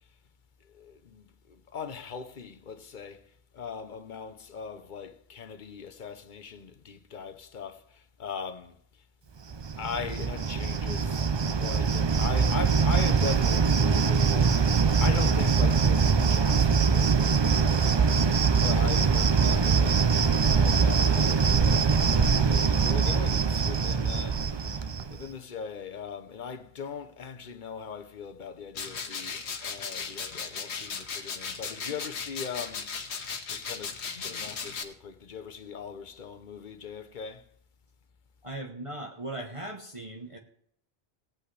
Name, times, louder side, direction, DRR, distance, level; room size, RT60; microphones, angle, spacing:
voice 1, 0.7-3.3 3.5-8.8 9.8-11.3 11.6-14.6 15.0-24.4 25.1-32.9 33.5-34.0 34.2-37.4, left 6 dB, 50° left, 0.9 m, -40 dB
Cricket, 9.5-25.2, right 5 dB, 45° right, 0.3 m, -23 dB
sound 1, 28.7-34.8, left 5 dB, 80° left, 1.3 m, -36 dB
voice 2, 38.4-40.4, right 2 dB, 30° right, 1.1 m, -39 dB
18.5 x 8.3 x 3.3 m
omnidirectional pair, 1.1 m